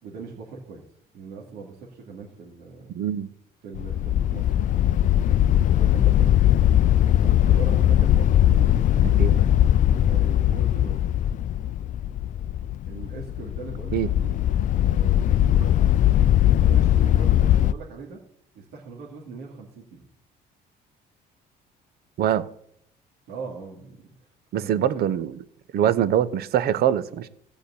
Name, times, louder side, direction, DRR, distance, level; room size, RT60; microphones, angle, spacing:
voice 1, 0.0-0.8 1.1-2.9 3.6-4.8 5.7-6.7 7.2-9.5 10.0-11.1 12.9-14.4 14.8-18.2 18.5-20.1 23.3-24.3 24.6-25.0, right 4 dB, 85° right, 2.5 m, -40 dB
voice 2, 2.9-3.3 9.2-9.3 13.9-14.1 22.2-22.5 24.5-25.3 25.7-27.3, right 10 dB, 65° right, 0.9 m, -23 dB
sound 1, 3.7-17.7, left 11 dB, 50° left, 0.4 m, -20 dB
15.5 x 5.1 x 8.4 m
cardioid pair, 110°, 17 cm